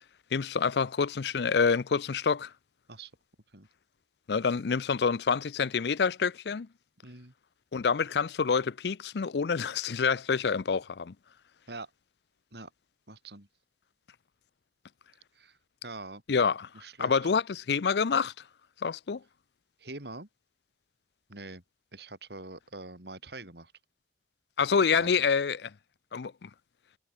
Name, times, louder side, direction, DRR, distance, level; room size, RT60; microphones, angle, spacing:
voice 1, 0.3-2.5 4.3-6.7 7.7-11.1 16.3-16.7 17.0-18.3 18.8-19.2 24.6-25.7 26.1-26.5, left 5 dB, 75° left, 0.5 m, -27 dB
voice 2, 7.0-7.3 11.7-11.9 12.5-12.7 13.1-13.5 15.3-15.6 15.8-16.2 16.7-17.3 19.8-20.3 21.3-21.6 21.9-23.7 24.9-25.1, right 2 dB, 75° right, 4.8 m, -44 dB
head